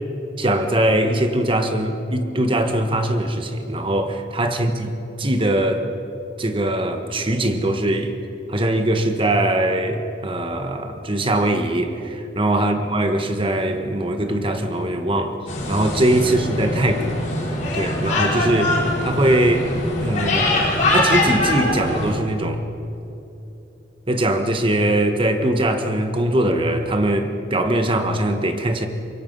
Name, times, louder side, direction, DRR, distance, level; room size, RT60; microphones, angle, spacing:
voice 1, 0.4-5.9 6.4-8.2 8.5-15.4 15.7-17.3 17.7-19.7 20.0-22.6 24.1-28.9, right 1 dB, 30° right, 6 dB, 1.5 m, -21 dB
sound 1, 15.5-22.1, left 1 dB, 45° left, 4.3 m, -23 dB
25.0 x 23.0 x 5.6 m, 2.8 s
head